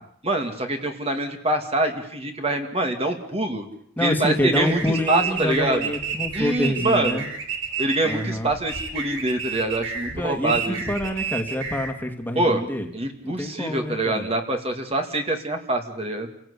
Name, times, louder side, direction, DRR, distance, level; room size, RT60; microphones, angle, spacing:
voice 1, 0.2-3.7 4.0-4.8 5.1-5.9 6.3-7.3 7.8-10.8 12.4-12.6 12.9-16.3, right 2 dB, 30° right, 4 dB, 2.2 m, -25 dB
voice 2, 4.0-7.3 8.0-8.5 10.1-12.9 13.2-14.3, left 1 dB, 10° left, 4 dB, 2.1 m, -27 dB
sound 1, 4.5-11.9, right 5 dB, 70° right, 3.1 m, -31 dB
29.0 x 17.0 x 8.3 m, 0.69 s
head